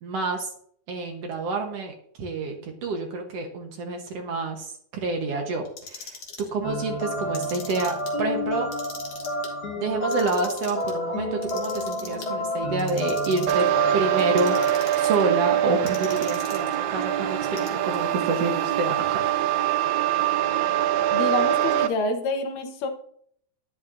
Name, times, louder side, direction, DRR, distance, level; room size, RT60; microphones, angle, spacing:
voice 1, 0.0-0.5 0.9-8.7 9.8-13.7 13.9-14.6 15.0-19.3, right 3 dB, 60° right, 3 dB, 1.9 m, -28 dB
Clock, 5.7-6.5 7.2-8.1 8.6-9.5 10.0-10.9 11.4-12.3 12.8-13.7 14.2-15.2 15.9-16.8 17.4-18.0, left 5 dB, 55° left, 2.3 m, -41 dB
sound 1, 6.6-14.7, left 1 dB, 35° left, 2.2 m, -29 dB
sound 2, 13.5-21.9, right 12 dB, 75° right, 1.8 m, -24 dB
voice 2, 21.1-22.9, left 3 dB, 90° left, 5 dB, 2.8 m, -27 dB
11.5 x 10.5 x 2.6 m, 0.64 s
omnidirectional pair, 3.7 m